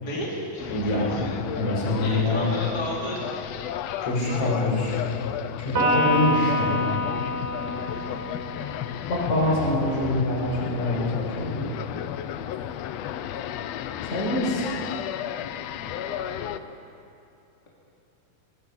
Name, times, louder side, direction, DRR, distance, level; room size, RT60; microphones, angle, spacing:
voice 1, 0.0-1.3 2.0-3.2 7.6-8.0 15.9-16.6, left 1 dB, 25° left, -5 dB, 3.9 m, -34 dB
sound 1, 0.6-16.6, left 11 dB, 85° left, 1.4 m, -33 dB
voice 2, 0.7-1.2 1.6-2.5 4.0-5.0 5.6-6.8 9.1-11.7 14.1-14.7, left 1 dB, 55° left, -3 dB, 7.3 m, -25 dB
Electric guitar, 5.7-9.3, left 1 dB, 85° right, 5.6 m, -27 dB
21.0 x 19.0 x 8.7 m, 2.6 s
omnidirectional pair, 3.9 m